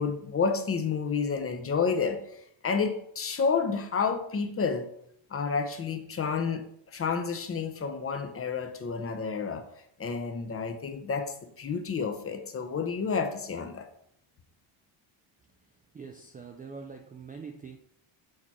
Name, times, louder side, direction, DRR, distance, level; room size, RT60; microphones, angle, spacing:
voice 1, 0.0-4.9 5.3-9.7 10.0-13.9, left 5 dB, 30° left, 7 dB, 0.7 m, -30 dB
voice 2, 15.9-17.8, right 5 dB, 20° right, 4 dB, 0.3 m, -43 dB
6.6 x 4.5 x 4.2 m, 0.71 s
cardioid pair, 130°, 49 cm